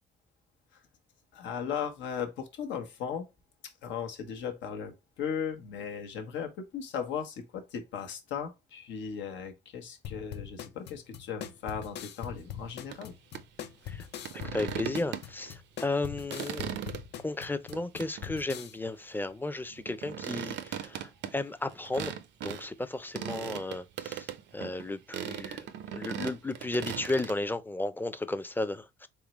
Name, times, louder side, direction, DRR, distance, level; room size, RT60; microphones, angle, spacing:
voice 1, 1.3-3.3 3.6-13.1, left 7 dB, 85° left, 1.0 m, -37 dB
sound 1, 10.0-18.7, left 9 dB, 65° left, 0.6 m, -42 dB
sound 2, 12.9-13.0 13.3-13.4 14.2-15.5 15.9-17.0 17.7-18.3 19.7-22.7 23.2-24.9 25.1-27.3, right 9 dB, 75° right, 0.5 m, -38 dB
voice 2, 14.3-16.7 17.2-22.1 22.4-29.1, left 2 dB, 10° left, 0.5 m, -34 dB
3.7 x 3.2 x 3.0 m
cardioid pair, 90°, 19 cm